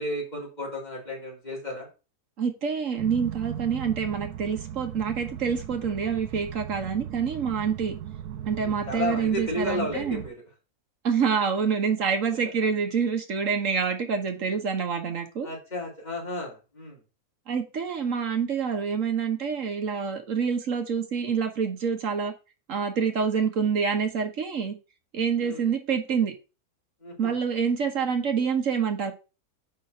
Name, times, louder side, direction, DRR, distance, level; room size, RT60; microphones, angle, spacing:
voice 1, 0.0-1.9 8.6-10.3 15.4-17.0 25.4-25.6 27.0-27.3, left 1 dB, 25° left, 2.9 m, -33 dB
voice 2, 2.4-7.9 8.5-10.2 11.0-15.5 17.5-22.3 22.7-24.8 25.1-26.3 27.2-29.1, right 6 dB, 60° right, 1.5 m, -27 dB
sound 1, 3.0-10.3, right 10 dB, 85° right, 1.2 m, -38 dB
5.3 x 4.5 x 6.2 m
omnidirectional pair, 1.6 m